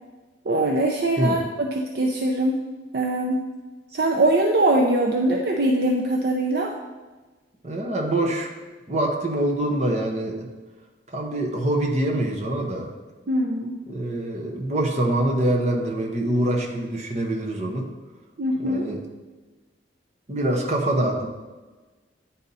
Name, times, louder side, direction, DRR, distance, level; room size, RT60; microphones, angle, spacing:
voice 1, 0.5-2.6 2.9-3.5 3.9-6.7 13.3-13.8 18.4-18.9, right 1 dB, 55° right, 1 dB, 0.5 m, -22 dB
voice 2, 7.6-8.5 8.9-10.5 11.1-12.9 13.9-17.9 18.6-19.0 20.3-21.3, right 1 dB, 35° right, 1 dB, 0.9 m, -25 dB
9.7 x 4.1 x 4.0 m, 1.2 s
head